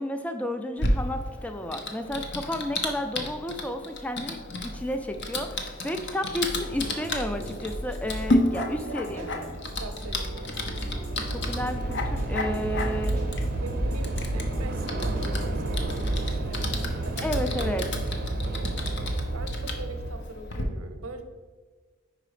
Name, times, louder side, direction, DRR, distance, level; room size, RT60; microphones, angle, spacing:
voice 1, 0.0-9.2 11.3-13.2 17.2-17.9, equal, 5° left, 7 dB, 0.3 m, -32 dB
Typing, 0.8-20.6, left 2 dB, 55° left, 0.7 m, -33 dB
sound 1, 6.6-17.3, equal, 35° left, 1.9 m, -40 dB
Train / Subway metro underground, 7.0-7.3 7.5-20.1, right 1 dB, 45° right, 0.5 m, -31 dB
voice 2, 8.7-10.5 13.0-17.8 18.4-21.2, right 3 dB, 85° right, 7 dB, 0.7 m, -42 dB
5.0 x 4.8 x 4.9 m, 1.4 s
head